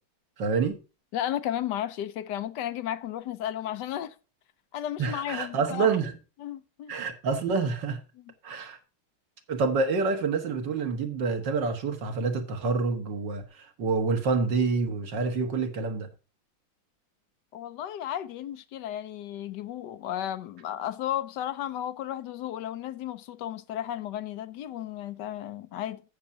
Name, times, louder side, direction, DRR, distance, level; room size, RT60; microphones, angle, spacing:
voice 1, 0.4-0.8 5.0-6.1 6.9-8.0 8.4-8.8 9.5-13.4 13.8-16.1, right 4 dB, 60° right, 2.0 m, -27 dB
voice 2, 1.1-4.2 4.7-5.9 6.4-6.9 8.2-8.3 17.5-26.0, left 11 dB, 70° left, 1.1 m, -34 dB
16.0 x 6.6 x 2.7 m
omnidirectional pair, 2.3 m